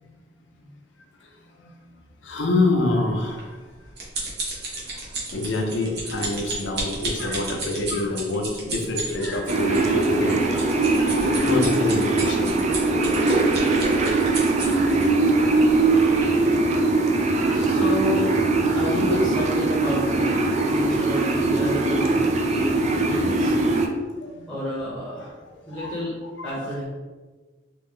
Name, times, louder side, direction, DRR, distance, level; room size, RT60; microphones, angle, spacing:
voice 1, 1.2-1.7 2.2-3.6 4.7-12.6 12.9-13.3 14.3-14.4 14.9-15.3 15.6-15.7 16.1-17.8 22.6-22.7 23.7-23.9 24.2-24.5 25.5-25.9 26.2-26.6, left 2 dB, 70° left, 2 dB, 0.6 m, -27 dB
sound 1, 3.4-15.0 15.7-15.9 16.2-16.3, right 2 dB, 60° right, 0.9 m, -32 dB
sound 2, 9.5-23.9, right 3 dB, 35° right, 0.3 m, -21 dB
voice 2, 17.5-18.3 18.7-23.6 24.5-25.3 25.7-26.2 26.4-26.8, equal, 5° left, -7 dB, 0.8 m, -29 dB
3.1 x 2.3 x 3.7 m, 1.3 s
head